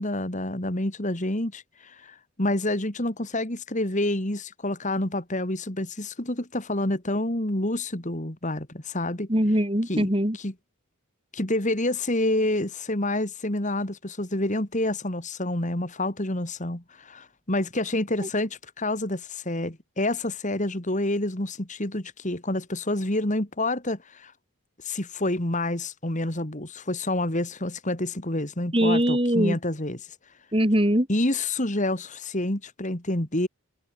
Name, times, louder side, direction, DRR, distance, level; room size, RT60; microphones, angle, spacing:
voice 1, 0.0-9.3 9.9-10.1 10.4-10.5 11.3-24.3 24.8-30.0 31.1-33.5, left 1 dB, 35° left, 2.7 m, -28 dB
voice 2, 9.3-10.4 28.7-29.6 30.5-31.1, equal, 25° right, 4.1 m, -22 dB
head